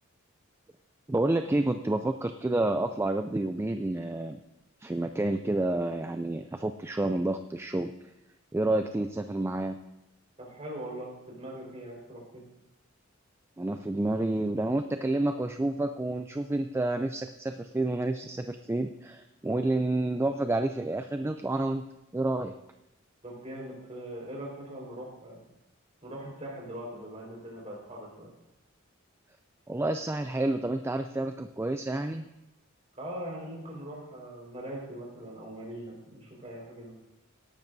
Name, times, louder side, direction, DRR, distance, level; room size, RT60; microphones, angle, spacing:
voice 1, 1.1-4.4 4.8-7.9 8.5-9.8 13.6-21.8 22.1-22.5 29.7-32.3, right 2 dB, 10° right, 8 dB, 0.3 m, -29 dB
voice 2, 10.4-12.4 23.2-25.4 26.0-28.3 32.9-36.9, right 1 dB, 35° right, -2 dB, 4.5 m, -41 dB
18.0 x 11.5 x 2.7 m, 0.93 s
head